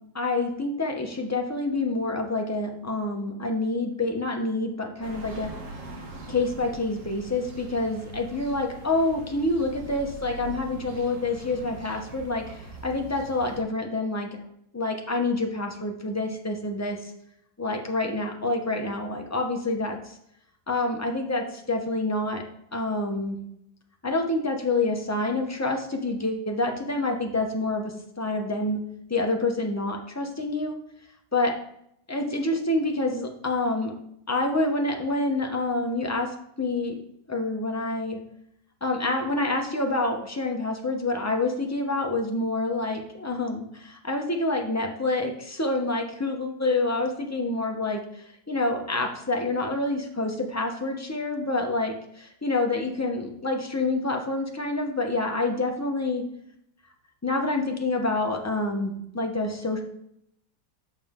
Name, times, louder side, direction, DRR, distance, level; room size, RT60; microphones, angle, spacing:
voice 1, 0.1-5.5 6.3-14.3 14.7-17.0 17.6-20.0 20.7-22.4 22.7-23.4 24.0-28.8 29.1-30.8 31.3-31.5 32.1-33.9 34.3-36.3 36.6-37.0 37.3-38.2 38.8-48.0 48.5-56.2 57.2-59.8, left 2 dB, 15° left, 2 dB, 0.6 m, -27 dB
sound 1, 5.0-13.6, right 2 dB, 50° right, 1.4 m, -42 dB
7.2 x 6.8 x 3.7 m, 0.74 s
omnidirectional pair, 1.9 m